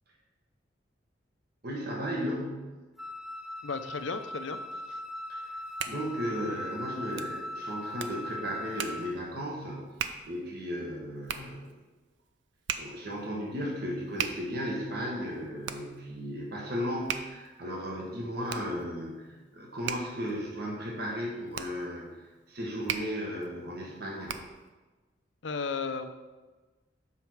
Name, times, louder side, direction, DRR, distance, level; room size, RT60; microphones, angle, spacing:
voice 1, 1.6-2.6 5.3-5.6 5.9-9.9 10.3-11.7 12.8-22.2 22.5-24.3, equal, 55° right, -2 dB, 1.5 m, -35 dB
Wind instrument woodwind instrument, 3.0-9.2, left 1 dB, ahead, 0.3 m, -39 dB
voice 2, 3.6-4.6 4.9-5.0 25.4-26.1, left 4 dB, 80° left, 8 dB, 0.6 m, -34 dB
Hands, 5.4-24.7, right 8 dB, 75° right, 0.5 m, -41 dB
7.2 x 5.6 x 4.5 m, 1.3 s
head